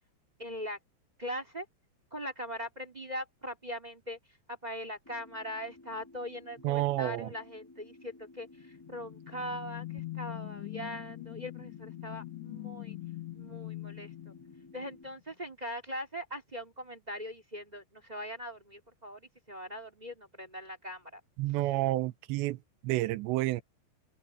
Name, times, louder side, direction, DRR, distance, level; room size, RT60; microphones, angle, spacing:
voice 1, 0.4-0.8 1.2-1.7 2.1-4.2 4.5-13.0 13.3-14.3 14.7-21.2, equal, 10° right, 2.1 m, -41 dB
sound 1, 5.0-15.0, left 2 dB, 5° left, 3.1 m, -55 dB
voice 2, 6.6-7.3 21.4-22.6 22.8-23.6, right 17 dB, 80° right, 2.9 m, -29 dB
sound 2, 8.6-15.1, left 19 dB, 80° left, 3.0 m, -43 dB
omnidirectional pair, 5.1 m